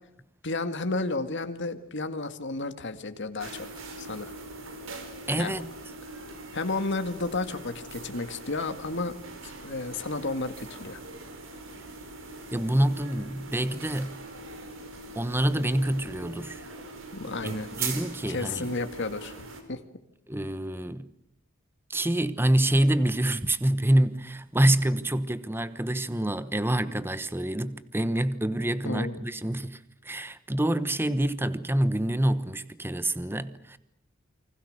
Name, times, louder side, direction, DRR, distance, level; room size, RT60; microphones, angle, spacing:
voice 1, 0.4-3.7 4.0-4.3 5.4-5.6 6.5-9.1 9.6-11.0 17.1-17.7 18.3-19.8 28.8-29.2, left 3 dB, 60° left, 2.1 m, -32 dB
sound 1, 3.4-19.6, right 3 dB, 70° right, 4.9 m, -41 dB
voice 2, 5.3-5.7 12.5-14.2 15.1-16.6 17.4-18.7 20.3-21.1 21.9-29.8 30.0-33.8, right 1 dB, 10° right, 1.0 m, -26 dB
29.0 x 24.5 x 6.7 m
head